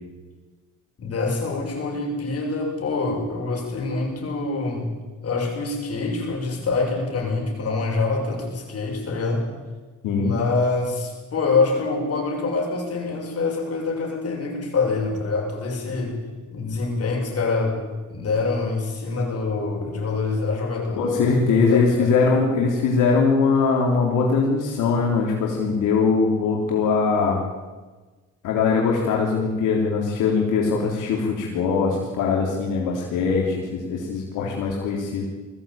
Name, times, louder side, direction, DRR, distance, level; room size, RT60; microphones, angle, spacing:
voice 1, 1.0-4.9 5.2-9.5 10.0-16.2 16.5-17.8 18.1-21.1 21.5-22.1, left 3 dB, 50° left, 0 dB, 7.0 m, -25 dB
voice 2, 10.0-10.4 21.0-27.4 28.4-35.2, left 4 dB, 90° left, -2 dB, 3.5 m, -21 dB
20.5 x 16.0 x 8.9 m, 1.3 s
cardioid pair, 90°, 30 cm